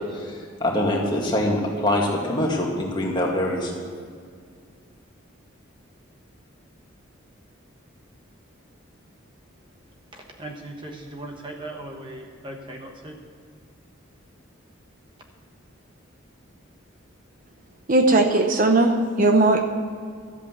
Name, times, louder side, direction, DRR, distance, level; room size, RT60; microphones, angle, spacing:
voice 1, 0.0-3.7, left 1 dB, 20° left, -2 dB, 2.2 m, -24 dB
voice 2, 10.1-13.2, right 1 dB, 25° right, 2 dB, 1.2 m, -38 dB
voice 3, 17.9-19.6, right 2 dB, 40° right, 5 dB, 0.8 m, -18 dB
13.0 x 8.4 x 8.1 m, 2.1 s
head